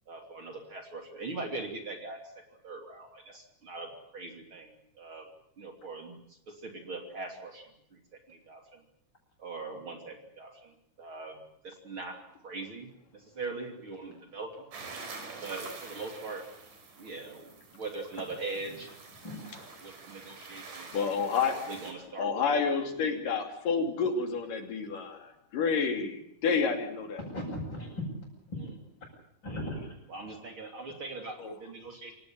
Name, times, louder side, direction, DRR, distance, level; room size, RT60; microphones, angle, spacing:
voice 1, 0.1-5.3 5.6-6.2 6.5-8.0 8.3-8.8 9.4-12.2 12.4-14.7 15.4-16.4 17.0-18.9 19.8-20.9 21.4-22.3 22.6-22.9 28.6-28.7 30.1-32.1, right 3 dB, 40° right, 4 dB, 3.6 m, -41 dB
sound 1, 14.7-21.9, right 4 dB, 80° right, 5.7 m, -47 dB
voice 2, 19.2-19.7 27.2-28.0 28.5-28.6 29.4-29.9, left 1 dB, 35° left, -6 dB, 8.4 m, -37 dB
voice 3, 20.9-21.6 22.2-27.2 31.4-31.6, left 5 dB, 90° left, 5 dB, 4.6 m, -29 dB
27.5 x 17.0 x 8.9 m, 0.73 s
omnidirectional pair, 3.7 m